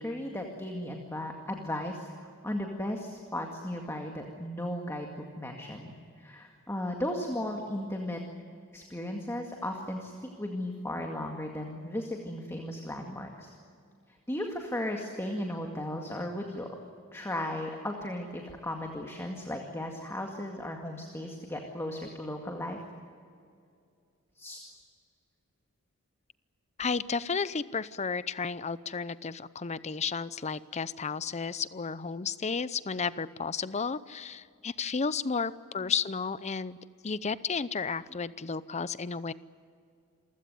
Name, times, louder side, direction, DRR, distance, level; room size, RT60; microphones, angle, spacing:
voice 1, 0.0-5.9 6.2-8.2 8.7-13.5 14.3-16.7 17.1-22.8 24.4-24.6 35.8-35.9, left 1 dB, 10° left, 2 dB, 2.1 m, -36 dB
voice 2, 26.8-36.8 37.0-39.3, left 5 dB, 30° left, 16 dB, 0.6 m, -33 dB
28.0 x 16.0 x 9.5 m, 2.4 s
head